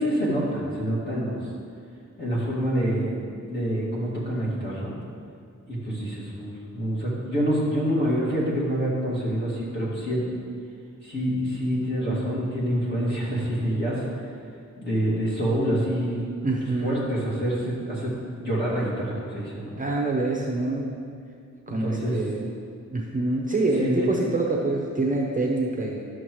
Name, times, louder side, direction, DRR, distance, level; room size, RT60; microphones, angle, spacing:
voice 1, 0.0-1.4 2.2-4.9 5.7-10.3 11.0-14.1 14.8-16.3 16.8-19.8 21.7-22.2 23.8-24.1, equal, 35° left, -7 dB, 2.2 m, -26 dB
voice 2, 16.4-17.1 19.8-21.0 21.7-22.5 22.9-26.0, right 2 dB, 25° right, -1 dB, 0.6 m, -26 dB
11.5 x 6.5 x 3.1 m, 2.3 s
wide cardioid pair, 170°, 30 cm